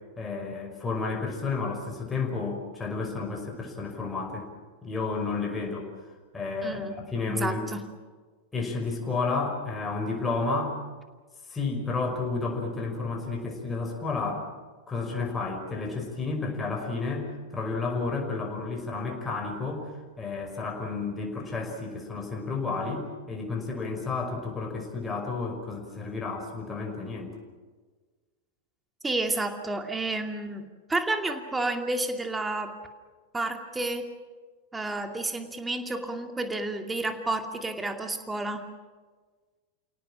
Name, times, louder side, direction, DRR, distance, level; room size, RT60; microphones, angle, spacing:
voice 1, 0.2-4.5 4.8-5.9 6.3-7.6 8.5-10.8 11.5-14.5 14.9-27.3, left 4 dB, 15° left, 1 dB, 5.3 m, -31 dB
voice 2, 6.6-7.0 7.3-7.8 29.0-32.7 33.3-34.0 34.7-38.6, right 2 dB, 10° right, 5 dB, 2.5 m, -30 dB
29.5 x 18.0 x 7.4 m, 1.4 s
figure-of-eight pair, 90°, 0 cm